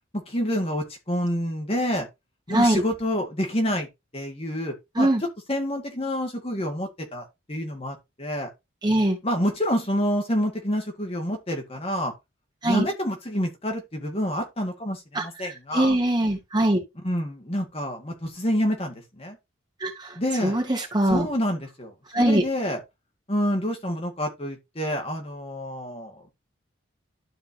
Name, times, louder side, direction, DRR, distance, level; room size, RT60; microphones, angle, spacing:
voice 1, 0.1-2.1 2.5-3.9 4.1-5.1 5.5-8.5 9.2-12.1 12.6-15.9 17.0-19.4 20.2-20.6 21.1-22.8 23.3-26.3, equal, 30° left, 1.9 m, -28 dB
voice 2, 2.5-2.8 5.0-5.2 8.8-9.2 12.6-12.9 15.1-16.8 19.8-20.1 20.4-21.3 22.1-22.4, right 1 dB, 20° right, 2.5 m, -22 dB
12.5 x 4.6 x 2.9 m
head